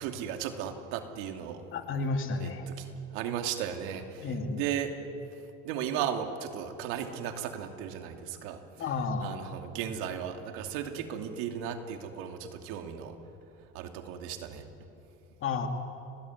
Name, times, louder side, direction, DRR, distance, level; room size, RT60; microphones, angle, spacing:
voice 1, 0.0-1.6 2.4-4.9 5.6-8.6 9.2-13.2 13.7-14.7, right 9 dB, 90° right, 5 dB, 2.8 m, -36 dB
voice 2, 1.7-2.7 4.2-4.6 8.8-9.3 15.4-15.7, left 4 dB, 45° left, 5 dB, 2.9 m, -31 dB
30.0 x 19.5 x 9.7 m, 2.8 s
cardioid pair, 130°, 29 cm